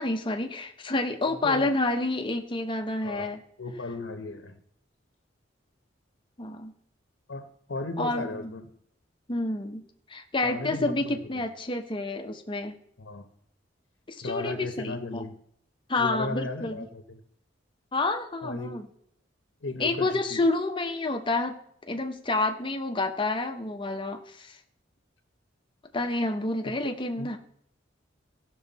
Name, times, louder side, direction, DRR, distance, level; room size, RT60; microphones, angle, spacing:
voice 1, 0.0-3.4 6.4-6.7 8.0-8.5 9.3-9.8 10.1-12.7 14.1-15.2 15.9-16.9 17.9-18.8 19.8-21.6 21.9-24.6 25.9-27.4, left 2 dB, 25° left, 5 dB, 0.9 m, -29 dB
voice 2, 1.3-1.7 3.0-3.3 3.6-4.6 7.3-8.7 10.4-11.4 13.0-13.3 14.2-15.3 16.0-17.2 18.4-18.7 19.6-20.4 27.2-27.4, left 3 dB, 75° left, 6 dB, 1.0 m, -35 dB
16.0 x 6.3 x 4.1 m, 0.69 s
head